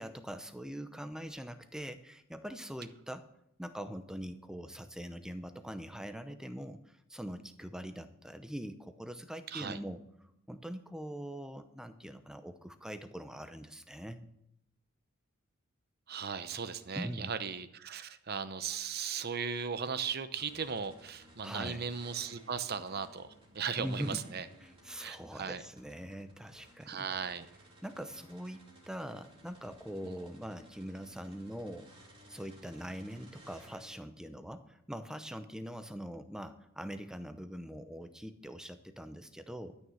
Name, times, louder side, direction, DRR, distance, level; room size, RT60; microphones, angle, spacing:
voice 1, 0.0-3.3 3.6-10.0 10.5-14.3 17.0-17.3 21.4-21.9 23.8-24.2 24.6-27.0 27.8-31.9 32.3-39.8, equal, 5° right, 10 dB, 0.6 m, -43 dB
voice 2, 9.5-9.8 16.1-24.5 25.0-25.6 26.9-27.5 30.0-30.2, right 6 dB, 45° right, 12 dB, 0.7 m, -37 dB
sound 1, 20.3-34.0, right 1 dB, 25° right, 2.8 m, -58 dB
12.5 x 6.5 x 7.0 m, 0.79 s
head